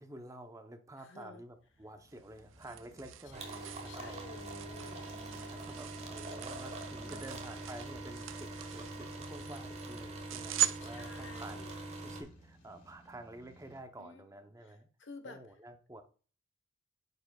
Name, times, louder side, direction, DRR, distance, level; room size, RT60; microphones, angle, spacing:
voice 1, 0.0-4.2 5.3-11.6 12.0-14.9 15.2-16.0, right 1 dB, 15° right, 0.7 m, -50 dB
voice 2, 1.0-1.4 3.3-5.1 7.0-7.4 10.8-11.8 14.0-14.3 15.0-15.4, left 3 dB, 75° left, 1.1 m, -52 dB
sound 1, 1.5-13.8, equal, 45° left, 2.5 m, -58 dB
sound 2, 2.1-11.6, right 12 dB, 85° right, 0.5 m, -41 dB
sound 3, 3.3-12.2, right 2 dB, 35° right, 1.3 m, -44 dB
9.4 x 5.0 x 2.3 m
head